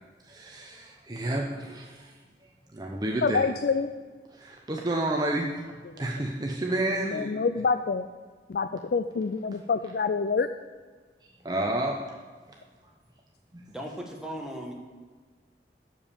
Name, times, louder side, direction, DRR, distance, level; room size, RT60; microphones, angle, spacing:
voice 1, 0.2-2.1 2.7-3.4 4.3-5.6 6.0-7.3 11.4-11.9 13.5-13.6, right 1 dB, 25° right, 0 dB, 0.8 m, -30 dB
voice 2, 3.2-3.9 7.1-8.1 8.5-10.5, left 4 dB, 60° left, 10 dB, 0.4 m, -26 dB
voice 3, 13.7-14.7, equal, 5° right, 0 dB, 1.3 m, -37 dB
7.9 x 7.0 x 7.1 m, 1.5 s
head